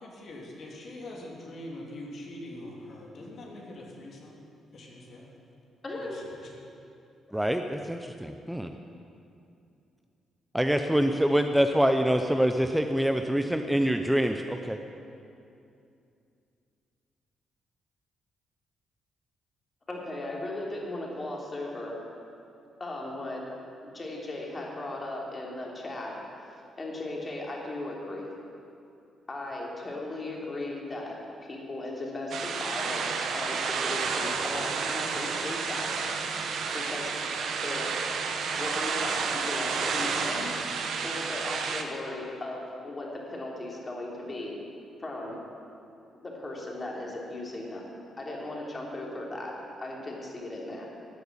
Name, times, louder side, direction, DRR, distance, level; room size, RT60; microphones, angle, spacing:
voice 1, 0.0-4.4 4.7-5.3 5.9-6.5, left 1 dB, 55° left, -2 dB, 3.0 m, -43 dB
voice 2, 5.8-6.2 19.9-22.0 22.8-23.4 23.8-28.3 29.3-36.1 36.7-37.1 37.6-37.9 38.6-40.5 41.0-44.6 45.0-45.4 46.2-47.9 48.2-50.9, left 2 dB, 30° left, -2 dB, 3.2 m, -37 dB
voice 3, 10.5-14.8, equal, 5° right, 6 dB, 0.6 m, -25 dB
sound 1, 32.3-41.8, right 5 dB, 70° right, 1.3 m, -30 dB
13.0 x 8.0 x 10.0 m, 2.6 s
cardioid pair, 100°, 0 cm